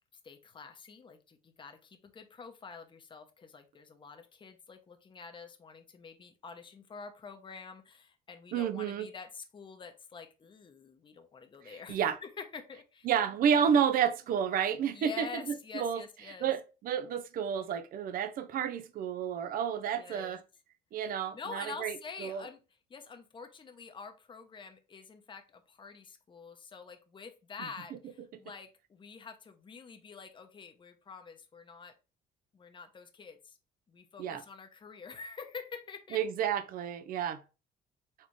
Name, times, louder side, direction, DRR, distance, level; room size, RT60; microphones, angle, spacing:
voice 1, 0.2-13.1 14.9-16.5 19.9-20.4 21.3-22.6 22.9-31.9 32.5-33.6 33.9-36.2, left 5 dB, 30° left, 0.8 m, -47 dB
voice 2, 8.5-9.1 11.6-12.2 13.0-16.0 16.4-20.4 20.9-22.4 34.2-34.4 36.1-37.4, right 8 dB, 60° right, 0.6 m, -30 dB
4.4 x 3.4 x 3.1 m
cardioid pair, 110°, 17 cm